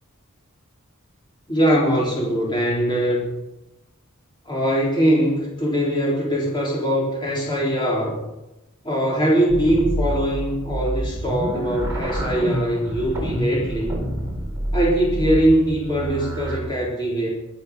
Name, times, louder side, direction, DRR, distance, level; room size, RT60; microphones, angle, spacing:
voice 1, 1.5-3.3 4.5-8.2 8.8-14.0 14.7-17.3, right 1 dB, 20° left, -5 dB, 3.8 m, -21 dB
sound 1, 9.5-16.6, equal, 15° right, 3.9 m, -27 dB
23.5 x 8.4 x 5.4 m, 0.94 s
head